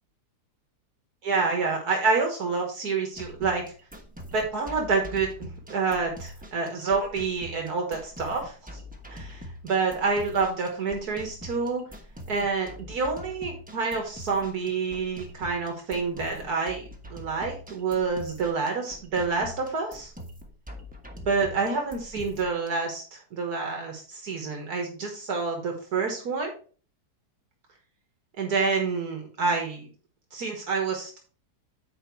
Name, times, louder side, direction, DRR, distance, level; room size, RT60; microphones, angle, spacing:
voice 1, 1.2-3.6 4.3-8.6 9.1-11.8 12.3-16.8 17.1-20.1 21.2-26.5 28.4-29.9 30.3-31.2, right 4 dB, 70° right, 2 dB, 1.9 m, -28 dB
sound 1, 3.2-22.7, equal, 5° right, 1.1 m, -44 dB
8.8 x 4.8 x 4.5 m, 0.40 s
omnidirectional pair, 1.7 m